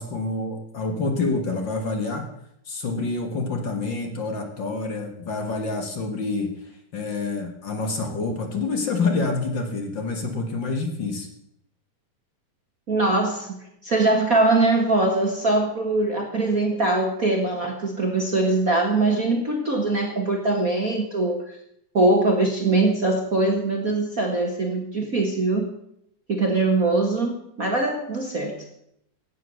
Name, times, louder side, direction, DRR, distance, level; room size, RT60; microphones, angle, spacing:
voice 1, 0.0-2.3 2.7-6.5 6.9-11.3, left 3 dB, 45° left, 5 dB, 1.7 m, -27 dB
voice 2, 12.9-21.6 21.9-25.7 26.3-28.5, right 2 dB, 45° right, 2 dB, 1.0 m, -22 dB
16.0 x 9.1 x 6.4 m, 0.74 s
omnidirectional pair, 4.0 m